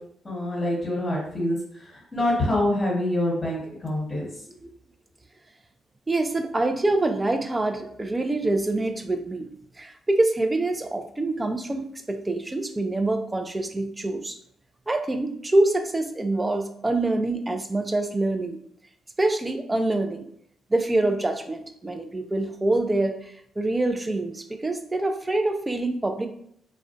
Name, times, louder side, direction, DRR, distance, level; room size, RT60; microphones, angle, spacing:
voice 1, 0.2-4.3, left 1 dB, 20° left, -5 dB, 1.0 m, -26 dB
voice 2, 6.1-14.4 14.9-18.6 19.2-20.3 20.7-26.3, right 2 dB, 20° right, 6 dB, 0.3 m, -25 dB
2.4 x 2.1 x 2.4 m, 0.67 s
supercardioid pair, 60°, 0 cm